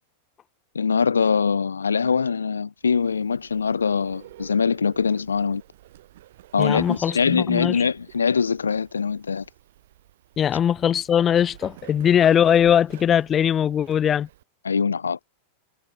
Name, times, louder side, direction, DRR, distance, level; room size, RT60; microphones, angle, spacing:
voice 1, 0.7-5.6 6.5-9.4 14.6-15.2, left 5 dB, 75° left, 1.1 m, -23 dB
Bird, 2.8-14.4, right 14 dB, 55° right, 4.4 m, -48 dB
voice 2, 6.6-7.8 10.4-14.3, left 9 dB, 25° left, 0.4 m, -20 dB
figure-of-eight pair, 90°, 0 cm